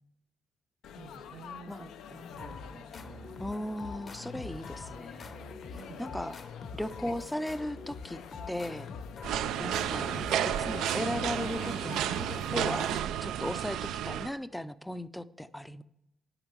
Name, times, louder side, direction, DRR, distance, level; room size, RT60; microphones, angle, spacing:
Laughter / Chatter / Crowd, 0.8-13.0, left 8 dB, 80° left, 0.5 m, -46 dB
voice 1, 1.0-3.4 5.7-6.2, right 5 dB, 55° right, 4 dB, 0.7 m, -51 dB
voice 2, 1.7-2.4 3.4-5.5 6.0-6.4 6.7-8.2 8.5-8.9 9.6-10.2 10.5-12.9 13.2-15.8, left 1 dB, 5° left, 14 dB, 0.4 m, -37 dB
sound 1, 2.4-11.9, left 4 dB, 50° left, 0.9 m, -45 dB
sound 2, 9.2-14.3, right 11 dB, 85° right, 0.3 m, -32 dB
10.0 x 8.7 x 3.2 m, 0.84 s
cardioid pair, 90°, 0 cm